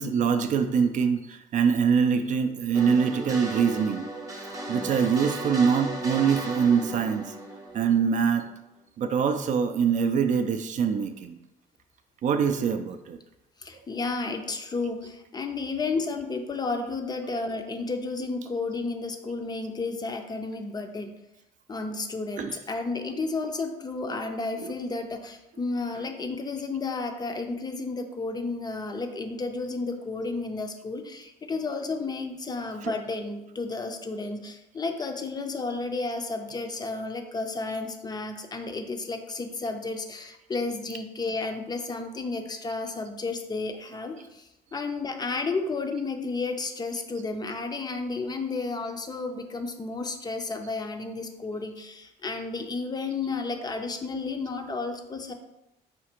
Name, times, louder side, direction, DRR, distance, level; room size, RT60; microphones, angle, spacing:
voice 1, 0.0-4.1 4.7-7.3 7.7-8.5 9.0-11.4 12.2-13.2 22.4-22.6 23.1-23.2 24.6-24.8 25.9-26.0 32.8-32.9, right 6 dB, 50° right, 8 dB, 0.4 m, -24 dB
sound 1, 2.7-8.5, right 2 dB, 20° right, 0.8 m, -35 dB
voice 2, 13.6-21.1 21.7-55.3, left 3 dB, 25° left, 6 dB, 0.5 m, -32 dB
5.0 x 2.4 x 4.3 m, 0.92 s
cardioid pair, 110°, 17 cm